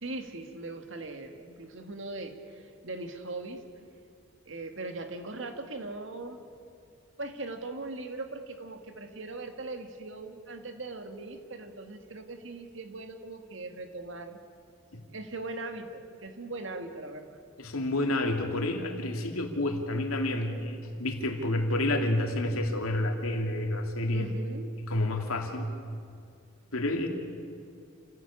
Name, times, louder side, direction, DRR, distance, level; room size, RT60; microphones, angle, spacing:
voice 1, 0.0-3.6 4.5-6.4 7.2-14.4 15.1-17.4 24.1-24.7, right 2 dB, 60° right, 6 dB, 2.0 m, -40 dB
voice 2, 17.6-24.3 24.8-25.7 26.7-27.1, left 1 dB, 85° left, 3 dB, 2.7 m, -29 dB
29.0 x 16.5 x 8.6 m, 2.3 s
head